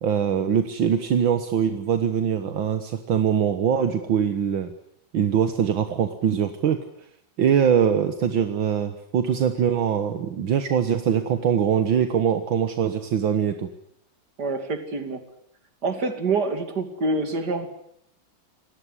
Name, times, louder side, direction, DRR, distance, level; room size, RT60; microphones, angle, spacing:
voice 1, 0.0-4.7 5.1-6.8 7.4-13.7, right 8 dB, 75° right, 8 dB, 2.1 m, -22 dB
voice 2, 14.4-15.2 15.8-17.7, right 3 dB, 55° right, 8 dB, 3.2 m, -26 dB
27.0 x 18.5 x 9.8 m, 0.71 s
omnidirectional pair, 2.1 m